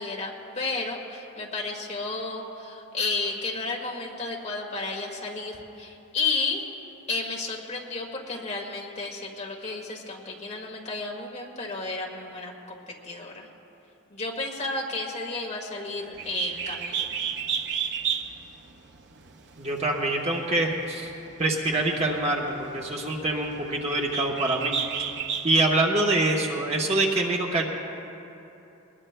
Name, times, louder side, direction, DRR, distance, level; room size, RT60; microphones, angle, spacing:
voice 1, 0.0-6.7 7.1-12.5 13.0-13.5 14.1-17.2, left 3 dB, 30° left, -1 dB, 1.8 m, -32 dB
Bird, 16.1-25.7, right 7 dB, 55° right, 0.7 m, -33 dB
voice 2, 19.6-21.1 21.4-24.8 25.4-27.7, right 2 dB, 30° right, -1 dB, 1.1 m, -25 dB
22.5 x 20.0 x 2.2 m, 2.9 s
head